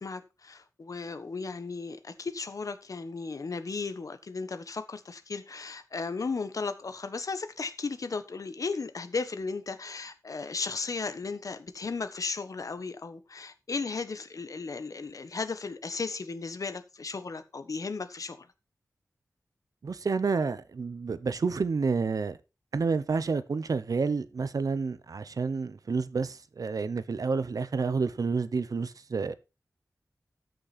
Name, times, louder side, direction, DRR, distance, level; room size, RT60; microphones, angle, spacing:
voice 1, 0.0-18.5, left 4 dB, 65° left, 1.2 m, -35 dB
voice 2, 19.8-22.4 22.7-29.3, right 4 dB, 70° right, 0.9 m, -29 dB
13.5 x 6.4 x 4.3 m
wide cardioid pair, 85°, 6 cm